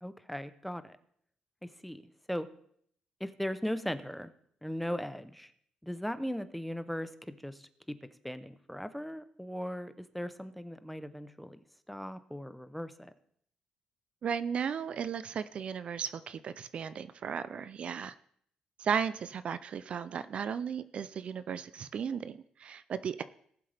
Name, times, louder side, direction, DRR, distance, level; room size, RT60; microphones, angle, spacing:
voice 1, 0.0-1.0 1.6-2.0 2.3-2.5 3.2-4.3 4.6-5.5 5.8-7.7 8.2-11.6 11.9-13.1, equal, ahead, 12 dB, 0.7 m, -38 dB
voice 2, 14.2-18.1 18.8-23.2, right 7 dB, 50° right, 14 dB, 0.4 m, -35 dB
18.5 x 7.7 x 3.4 m, 0.66 s
cardioid pair, 115°, 2 cm